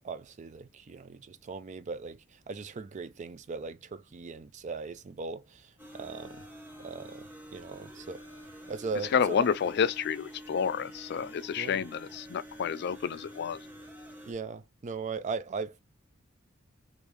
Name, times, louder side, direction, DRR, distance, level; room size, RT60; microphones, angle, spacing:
voice 1, 0.0-6.4 6.8-8.3 8.7-9.5 11.6-11.8 14.3-15.8, right 4 dB, 35° right, 0.4 m, -39 dB
sound 1, 5.8-14.3, equal, 10° right, 0.9 m, -48 dB
voice 2, 9.1-13.6, left 7 dB, 55° left, 0.3 m, -29 dB
3.5 x 2.6 x 3.0 m
head